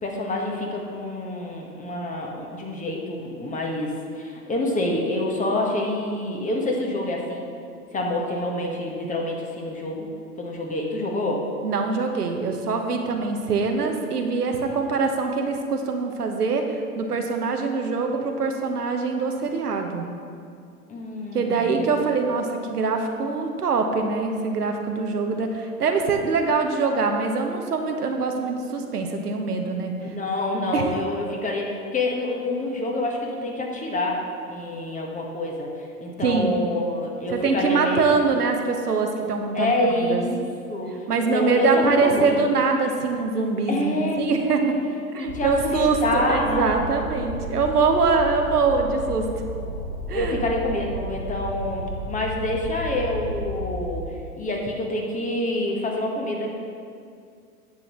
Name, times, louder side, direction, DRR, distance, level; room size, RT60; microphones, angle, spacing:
voice 1, 0.0-7.4 7.9-10.1 10.4-11.4 20.9-21.9 30.0-34.2 34.5-38.0 39.5-40.4 40.7-41.0 41.3-42.4 43.7-44.7 45.2-46.8 50.1-51.8 52.1-56.5, left 1 dB, 15° left, 0 dB, 1.4 m, -27 dB
voice 2, 11.6-20.0 21.3-29.9 30.7-30.9 36.2-36.6 37.3-40.2 41.1-44.8 45.1-49.3 50.1-50.4, right 4 dB, 85° right, 4 dB, 1.1 m, -23 dB
sound 1, 45.3-54.1, equal, 80° left, 2.3 m, -33 dB
10.5 x 7.9 x 3.1 m, 2.3 s
hypercardioid pair, 100°, 45 cm